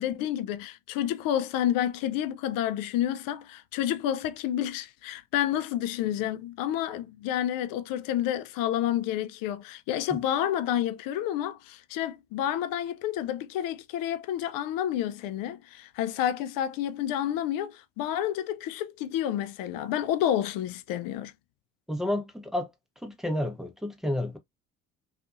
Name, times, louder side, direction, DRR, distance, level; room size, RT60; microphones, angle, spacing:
voice 1, 0.0-21.3, left 11 dB, 55° left, 0.5 m, -29 dB
voice 2, 21.9-22.7 23.0-24.4, left 1 dB, ahead, 0.7 m, -30 dB
2.6 x 2.4 x 2.4 m
hypercardioid pair, 55°, 42 cm